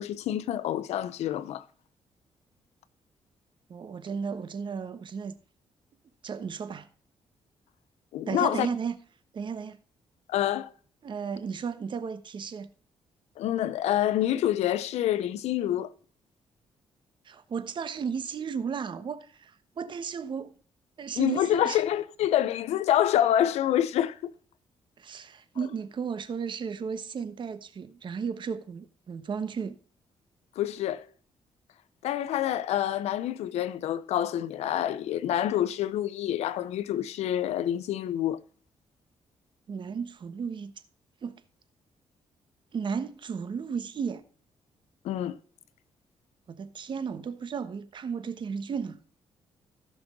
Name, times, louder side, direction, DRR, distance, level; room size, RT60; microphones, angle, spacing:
voice 1, 0.0-1.6 8.1-8.7 10.3-10.7 13.4-15.9 21.2-24.3 30.6-31.0 32.0-38.4 45.0-45.4, left 11 dB, 90° left, 0.7 m, -27 dB
voice 2, 3.7-5.3 6.2-6.9 8.3-9.0 9.3-9.8 11.0-12.7 17.2-20.6 21.0-21.8 25.0-29.8 39.7-40.7 41.2-41.4 42.7-44.2 46.5-49.0, right 6 dB, 50° right, 1.1 m, -34 dB
15.5 x 6.2 x 3.7 m
cardioid pair, 110°, 11 cm